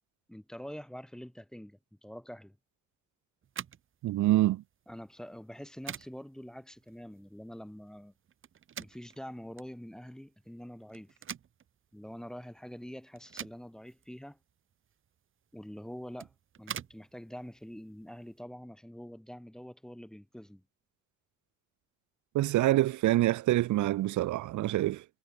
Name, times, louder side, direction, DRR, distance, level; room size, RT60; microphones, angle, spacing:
voice 1, 0.3-2.6 4.9-8.1 8.8-11.2 11.9-14.4 15.5-16.3 16.6-20.6, equal, ahead, 3.2 m, -45 dB
sound 1, 3.4-18.4, right 9 dB, 45° right, 2.5 m, -48 dB
voice 2, 4.0-4.6 22.3-25.0, right 15 dB, 85° right, 2.2 m, -26 dB
cardioid pair, 145°, 29 cm